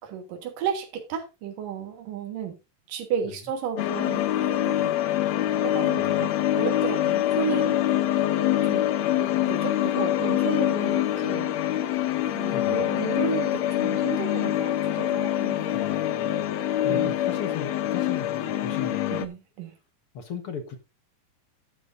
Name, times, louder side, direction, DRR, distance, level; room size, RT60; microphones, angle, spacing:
voice 1, 0.0-2.6 2.9-4.9 5.6-7.8 8.6-8.8 9.1-12.0 12.3-15.6 16.9-17.1 19.1-19.7, right 7 dB, 85° right, 3.2 m, -33 dB
sound 1, 3.8-19.3, left 12 dB, 70° left, 1.8 m, -25 dB
voice 2, 6.0-6.5 12.5-12.8 15.7-16.5 16.8-19.3 20.1-20.8, left 5 dB, 55° left, 1.8 m, -37 dB
12.5 x 9.8 x 2.6 m
omnidirectional pair, 3.7 m